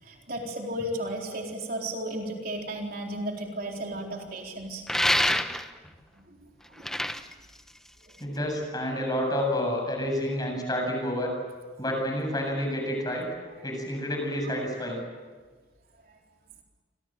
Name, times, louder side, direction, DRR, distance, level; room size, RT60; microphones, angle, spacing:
voice 1, 0.0-4.8 6.1-6.4 6.7-7.1 8.0-8.1 13.4-13.5 14.8-14.9 16.1-16.2, right 1 dB, 50° right, 1 dB, 4.1 m, -35 dB
sound 1, 4.9-5.9 6.6-8.4, left 1 dB, ahead, 1.0 m, -27 dB
voice 2, 8.2-11.3 11.8-13.3 13.6-15.0, left 1 dB, 20° left, 2 dB, 7.7 m, -29 dB
29.5 x 25.0 x 7.7 m, 1.4 s
head